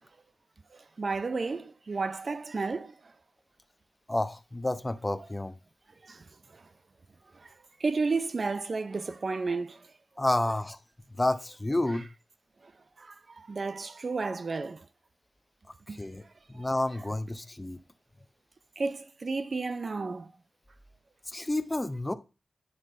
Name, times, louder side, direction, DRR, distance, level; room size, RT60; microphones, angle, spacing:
voice 1, 0.7-2.9 6.0-6.2 6.5-6.6 7.4-7.5 7.8-9.8 13.0-14.8 15.9-16.0 16.6-16.7 18.8-20.3, right 4 dB, 45° right, 0.4 m, -32 dB
voice 2, 4.1-5.5 10.2-10.8 11.2-12.1 15.9-16.2 16.5-17.8 21.3-22.1, left 1 dB, 15° left, 0.5 m, -30 dB
9.5 x 3.2 x 4.9 m
wide cardioid pair, 135°, 0 cm